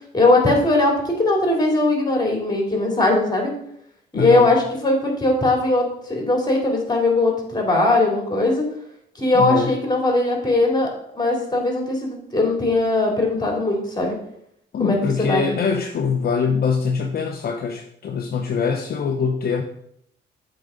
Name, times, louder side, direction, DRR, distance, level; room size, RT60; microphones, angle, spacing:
voice 1, 0.1-3.5 4.1-8.7 9.2-10.9 11.1-14.2 14.8-15.5, left 2 dB, 20° left, 1 dB, 2.5 m, -20 dB
voice 2, 4.1-4.5 9.3-9.7 14.7-19.6, left 5 dB, 50° left, 4 dB, 0.7 m, -23 dB
7.7 x 3.9 x 5.0 m, 0.73 s
cardioid pair, 90°, 20 cm